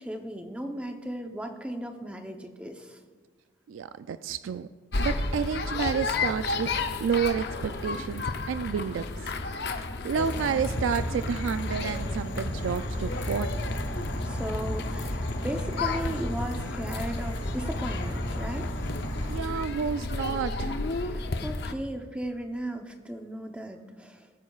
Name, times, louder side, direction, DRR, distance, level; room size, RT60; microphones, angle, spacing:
voice 1, 0.0-3.0 14.2-18.7 21.0-24.3, right 1 dB, 5° right, 4 dB, 0.8 m, -36 dB
voice 2, 3.7-4.7 5.0-9.3 9.8-13.5 19.2-20.9, right 7 dB, 85° right, 12 dB, 0.3 m, -30 dB
sound 1, 4.9-21.7, left 3 dB, 55° left, 0.7 m, -33 dB
Insect / Frog, 10.2-19.4, equal, 75° left, 1.3 m, -34 dB
21.0 x 9.3 x 2.4 m, 1.5 s
head